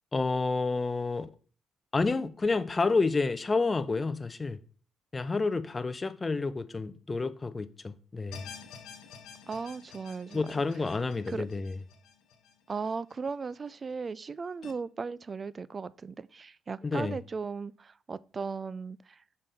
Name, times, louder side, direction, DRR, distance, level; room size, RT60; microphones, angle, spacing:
voice 1, 0.1-1.3 1.9-4.6 5.1-8.5 10.3-11.8 16.8-17.2, left 3 dB, 25° left, 0.5 m, -29 dB
sound 1, 8.3-13.5 13.9-14.0 14.6-14.7, left 6 dB, 90° left, 0.9 m, -50 dB
voice 2, 9.5-10.6 11.3-11.4 12.7-19.2, right 5 dB, 35° right, 0.3 m, -37 dB
5.5 x 5.3 x 4.1 m
cardioid pair, 90°, 0 cm